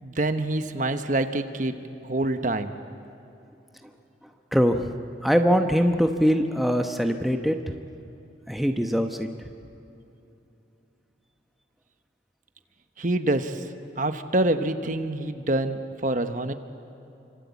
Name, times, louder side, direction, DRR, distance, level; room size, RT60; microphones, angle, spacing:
voice 1, 0.0-2.7 13.0-13.7 14.0-16.5, right 1 dB, 40° right, 8 dB, 1.1 m, -26 dB
voice 2, 4.5-4.9 5.2-7.7 8.5-9.5, equal, ahead, 5 dB, 1.0 m, -22 dB
28.0 x 25.5 x 8.4 m, 2.9 s
head